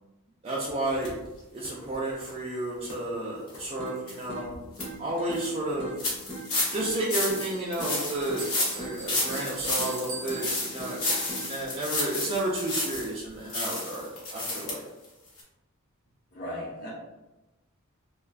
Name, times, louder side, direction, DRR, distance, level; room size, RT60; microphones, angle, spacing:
voice 1, 0.4-1.1 1.5-4.5 5.0-5.9 6.7-8.4 8.7-11.2 11.4-14.8, right 1 dB, 30° right, -6 dB, 0.3 m, -31 dB
sound 1, 1.0-1.1 1.6-1.7 2.2-2.3 2.8-2.9 3.5-3.6 4.1-4.2 4.5-4.8 5.3-5.5 6.0-13.2 13.5-14.7 15.0-15.1 15.4-15.5, left 2 dB, 70° left, 0.8 m, -31 dB
sound 2, 3.8-11.8, right 1 dB, 5° left, 0.7 m, -42 dB
Bell, 7.0-11.2, right 6 dB, 70° right, 0.7 m, -44 dB
voice 2, 16.3-16.9, left 1 dB, 45° left, -9 dB, 0.9 m, -36 dB
2.4 x 2.2 x 2.4 m, 1.0 s
head